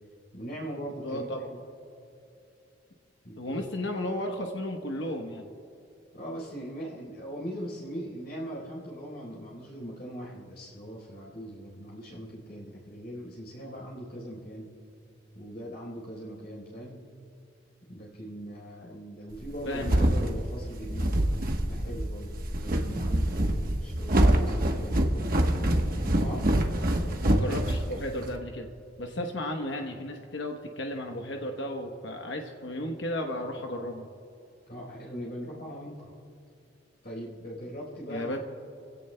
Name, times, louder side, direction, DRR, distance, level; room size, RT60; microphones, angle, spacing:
voice 1, 0.3-1.6 3.2-3.6 6.1-14.7 15.3-17.0 17.9-21.3 21.6-25.0 25.9-26.5 34.7-36.1 37.0-38.4, equal, 55° left, -3 dB, 4.1 m, -40 dB
voice 2, 1.0-1.4 3.4-5.5 19.7-20.1 27.2-28.7 29.0-34.1 38.1-38.4, left 1 dB, 75° left, 3 dB, 1.0 m, -34 dB
sound 1, 19.4-28.3, right 1 dB, 50° right, 1.1 m, -25 dB
25.0 x 16.5 x 2.2 m, 2.7 s
head